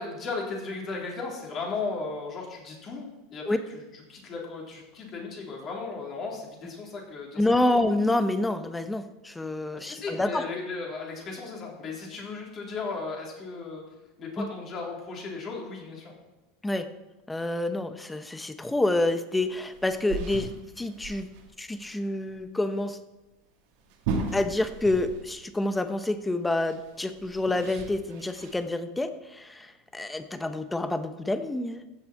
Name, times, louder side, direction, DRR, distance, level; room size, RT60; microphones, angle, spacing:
voice 1, 0.0-7.4 7.7-7.8 9.7-13.8 14.2-16.1, left 4 dB, 40° left, -1 dB, 3.7 m, -36 dB
voice 2, 7.4-10.4 14.4-14.5 16.6-16.9 17.3-20.5 20.8-21.3 21.6-23.0 24.3-31.8, left 2 dB, 10° left, 10 dB, 1.0 m, -28 dB
sound 1, 19.5-21.5 21.8-21.9 22.3-22.4 23.8-25.4 25.7-25.8 26.7-28.6, right 4 dB, 65° right, 2.2 m, -36 dB
15.5 x 7.1 x 4.5 m, 1.1 s
hypercardioid pair, 85°, 0 cm